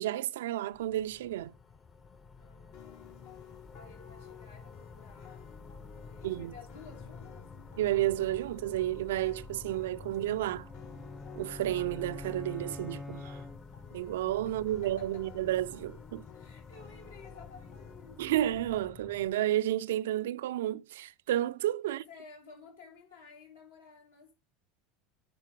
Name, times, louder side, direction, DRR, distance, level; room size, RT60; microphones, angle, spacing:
voice 1, 0.0-1.6 6.2-6.5 7.8-10.7 11.4-13.4 13.9-16.2 18.2-22.0, right 13 dB, 70° right, 0.4 m, -31 dB
sound 1, 0.7-19.3, left 4 dB, 25° left, 0.9 m, -50 dB
voice 2, 2.4-3.1 3.7-5.5 5.9-7.5 14.4-15.2 16.3-18.4 21.9-24.3, left 5 dB, 75° left, 4.1 m, -54 dB
sound 2, 2.7-18.7, left 7 dB, 60° left, 1.4 m, -55 dB
sound 3, 10.5-14.1, left 2 dB, 10° left, 0.5 m, -45 dB
10.0 x 4.3 x 5.1 m
figure-of-eight pair, 75°, 0 cm